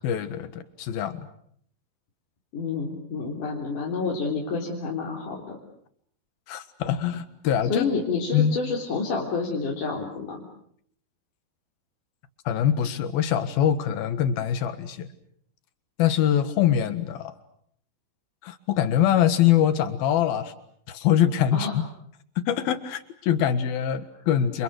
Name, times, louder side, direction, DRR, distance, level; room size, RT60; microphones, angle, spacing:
voice 1, 0.0-1.2 6.5-7.9 8.3-8.6 12.5-15.1 16.0-17.3 18.4-20.5 20.9-21.7 22.4-24.6, left 10 dB, 85° left, 11 dB, 3.5 m, -23 dB
voice 2, 2.5-5.6 7.7-10.4 21.5-21.7, left 4 dB, 60° left, -2 dB, 5.1 m, -29 dB
30.0 x 28.5 x 6.6 m, 0.67 s
omnidirectional pair, 4.1 m